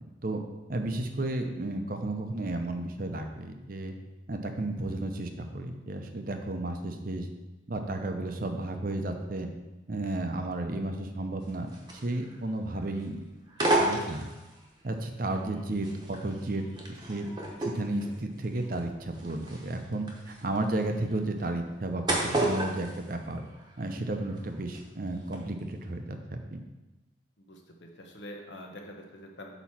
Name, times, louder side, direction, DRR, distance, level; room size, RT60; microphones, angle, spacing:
voice 1, 0.7-3.9 4.3-7.3 7.7-9.5 9.9-13.2 13.8-14.3 14.8-17.3 17.7-20.1 20.4-23.4 23.8-26.6, right 2 dB, 45° right, 5 dB, 0.7 m, -33 dB
sound 1, 11.4-12.5 12.7-13.1 13.5-14.7 15.3-23.9 24.2-24.8 25.2-25.3, right 1 dB, 20° right, 1.0 m, -32 dB
voice 2, 27.4-29.6, left 1 dB, 70° left, 1 dB, 1.1 m, -45 dB
8.3 x 3.0 x 6.0 m, 1.1 s
head